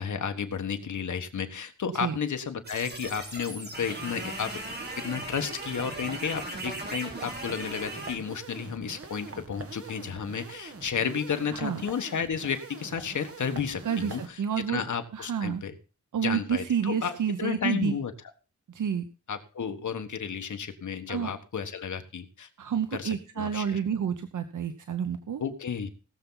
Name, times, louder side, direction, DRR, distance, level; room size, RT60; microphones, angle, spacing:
voice 1, 0.0-4.6 5.0-14.4 14.7-15.7 16.2-18.1 19.3-22.5 22.9-23.8 25.4-25.9, left 7 dB, 75° left, 7 dB, 1.5 m, -32 dB
sound 1, 2.6-8.2, right 1 dB, 35° right, 3.5 m, -38 dB
sound 2, 4.8-14.3, right 3 dB, 50° right, 1.7 m, -44 dB
voice 2, 11.5-11.8 13.8-14.8 15.1-15.6 16.1-17.9 18.7-19.0 21.1-21.3 22.6-25.4, right 8 dB, 85° right, 9 dB, 0.9 m, -29 dB
18.5 x 7.1 x 4.0 m, 0.33 s
wide cardioid pair, 115°, 30 cm